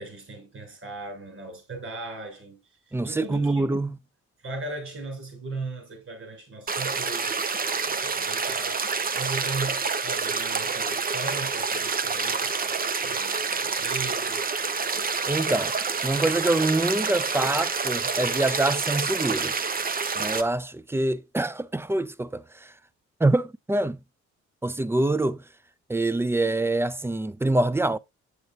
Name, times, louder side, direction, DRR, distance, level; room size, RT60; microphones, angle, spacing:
voice 1, 0.0-2.6 2.9-3.7 4.4-14.4, right 3 dB, 45° right, 5.7 m, -38 dB
voice 2, 2.9-4.0 15.3-15.7 16.0-19.6 20.2-22.7 23.2-24.0 24.6-25.4 25.9-28.0, right 2 dB, 10° right, 0.4 m, -25 dB
sound 1, 6.7-20.4, right 5 dB, 30° right, 0.7 m, -28 dB
8.0 x 7.7 x 2.5 m
cardioid pair, 90°, 30 cm